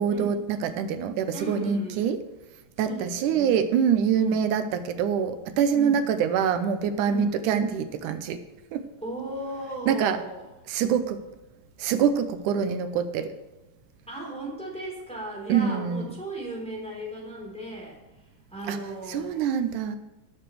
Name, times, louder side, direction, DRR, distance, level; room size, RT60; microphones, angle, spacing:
voice 1, 0.0-2.2 2.8-8.4 8.7-8.8 9.9-10.2 10.7-11.2 11.8-13.3 15.5-16.1 18.7-18.8 19.1-20.0, right 7 dB, 85° right, 9 dB, 2.2 m, -25 dB
voice 2, 1.3-2.1 2.8-3.5 4.1-4.4 5.7-6.0 7.1-7.4 9.0-10.4 14.1-18.0 18.5-19.5, right 1 dB, ahead, -3 dB, 3.3 m, -36 dB
19.0 x 6.9 x 3.2 m, 1.1 s
omnidirectional pair, 3.6 m